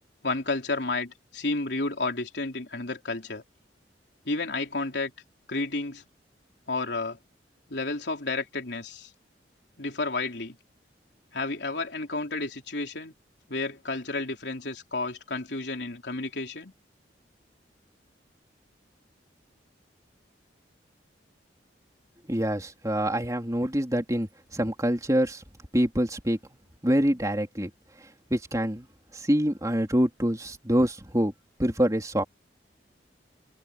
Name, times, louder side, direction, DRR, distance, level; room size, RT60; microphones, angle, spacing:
voice 1, 0.2-3.4 4.3-5.1 5.5-6.0 6.7-7.2 7.7-9.1 9.8-10.6 11.3-13.1 13.5-16.7, left 3 dB, 70° left, 3.7 m, -31 dB
voice 2, 22.3-25.4 25.7-26.4 26.8-27.7 28.3-28.9 29.1-31.3 31.6-32.2, equal, 20° right, 3.4 m, -25 dB
open air
head